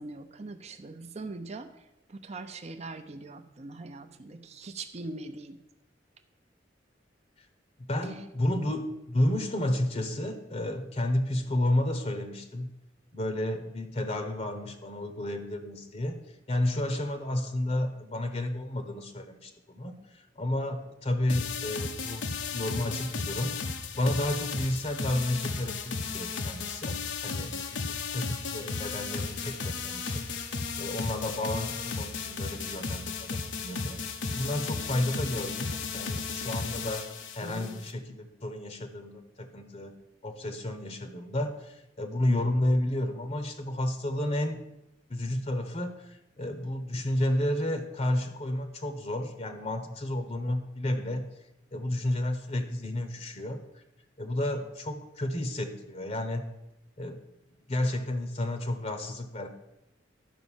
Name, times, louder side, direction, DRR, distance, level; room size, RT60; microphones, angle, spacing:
voice 1, 0.0-1.7 2.1-5.6 37.4-37.8, right 3 dB, 35° right, 7 dB, 0.7 m, -41 dB
voice 2, 7.9-12.7 13.1-22.2 22.5-23.5 23.9-27.0 27.2-30.3 30.8-34.0 34.3-39.9 40.2-44.6 45.1-51.2 51.7-53.8 54.2-56.4 57.0-57.2 57.7-59.5, left 1 dB, 35° left, 8 dB, 0.9 m, -31 dB
sound 1, 21.3-37.9, left 4 dB, 90° left, 1.1 m, -35 dB
11.0 x 5.2 x 7.2 m, 0.93 s
head